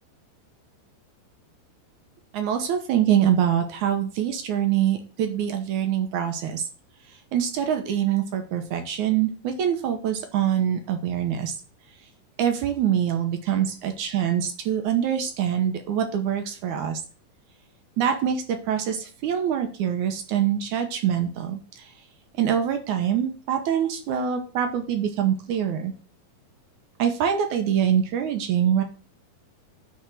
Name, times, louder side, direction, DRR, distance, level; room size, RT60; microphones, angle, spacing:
voice 1, 2.3-6.7 7.3-11.5 12.4-17.0 18.0-21.9 22.4-25.9 27.0-28.8, right 9 dB, 70° right, 6 dB, 2.1 m, -24 dB
10.0 x 3.7 x 6.2 m, 0.37 s
omnidirectional pair, 4.3 m